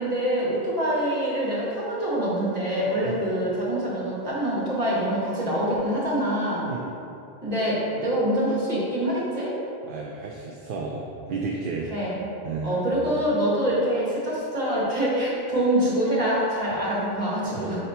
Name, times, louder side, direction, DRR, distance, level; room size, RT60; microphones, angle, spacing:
voice 1, 0.0-6.7 7.4-9.5 11.9-12.3 12.6-17.8, right 1 dB, 40° right, -8 dB, 1.7 m, -25 dB
voice 2, 9.9-11.9 12.4-12.8 17.5-17.8, right 4 dB, 65° right, -1 dB, 0.7 m, -32 dB
5.3 x 4.2 x 4.3 m, 2.6 s
omnidirectional pair, 1.0 m